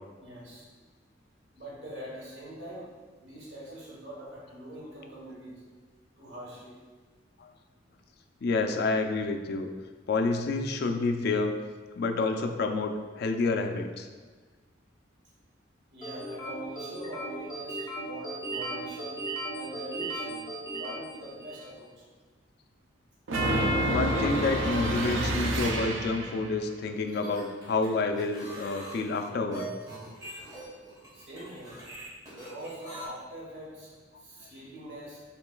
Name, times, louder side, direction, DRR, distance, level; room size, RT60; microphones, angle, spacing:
voice 1, 0.2-0.7 1.6-2.9 3.2-5.7 6.2-6.8 15.9-19.2 19.5-22.0 23.8-23.9 31.1-31.8 32.3-35.2, right 1 dB, 70° right, -5 dB, 1.1 m, -43 dB
voice 2, 8.4-9.7 10.1-11.6 12.0-14.1 23.8-29.7, left 3 dB, 55° left, 5 dB, 0.3 m, -29 dB
sound 1, 16.0-21.8, right 2 dB, 20° left, 0.7 m, -37 dB
sound 2, 23.3-26.5, right 1 dB, 90° right, 0.5 m, -28 dB
sound 3, 27.0-33.0, right 2 dB, 20° right, 1.2 m, -43 dB
5.9 x 3.2 x 2.3 m, 1.4 s
head